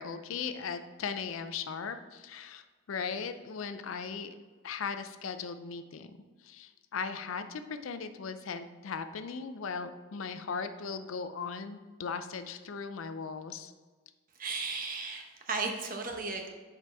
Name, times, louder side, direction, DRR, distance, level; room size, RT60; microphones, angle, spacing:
voice 1, 0.0-4.3 4.6-6.2 6.4-13.7, left 5 dB, 80° left, 10 dB, 0.5 m, -38 dB
voice 2, 14.4-16.5, right 4 dB, 45° right, 3 dB, 0.9 m, -35 dB
6.7 x 4.9 x 3.5 m, 1.4 s
head